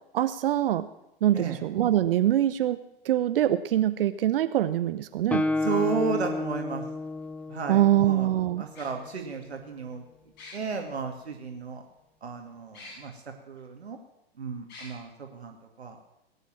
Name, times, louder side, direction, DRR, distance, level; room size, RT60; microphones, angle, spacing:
voice 1, 0.1-0.9 1.2-2.8 3.0-5.5 7.7-8.6, right 12 dB, 60° right, 12 dB, 0.9 m, -24 dB
Guitar, 5.3-9.0, left 2 dB, 5° left, 0.8 m, -31 dB
voice 2, 5.6-6.8 7.5-8.3 8.6-10.0 10.5-11.8 12.2-13.2 13.5-14.0 14.4-16.0, right 5 dB, 80° right, 3 dB, 2.4 m, -33 dB
sound 1, 6.2-6.3 7.7-7.8 8.7-8.9 10.4-10.8 12.7-13.0 13.6-13.7 14.7-14.9, left 3 dB, 35° left, 6.2 m, -45 dB
20.0 x 8.3 x 7.5 m, 0.87 s
hypercardioid pair, 110°, 32 cm